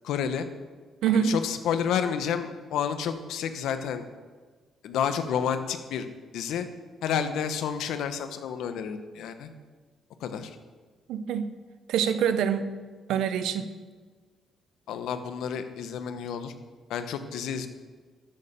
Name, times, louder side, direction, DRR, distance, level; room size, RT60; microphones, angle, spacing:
voice 1, 0.0-0.5 1.2-4.0 4.8-6.1 6.3-6.7 7.0-9.5 10.2-10.6 14.9-16.5 16.9-17.7, left 8 dB, 85° left, 9 dB, 1.0 m, -30 dB
voice 2, 1.0-1.4 11.1-11.6 11.9-12.8 13.1-13.8, right 7 dB, 85° right, 11 dB, 0.7 m, -25 dB
13.0 x 6.8 x 6.8 m, 1.5 s
cardioid pair, 90°, 0 cm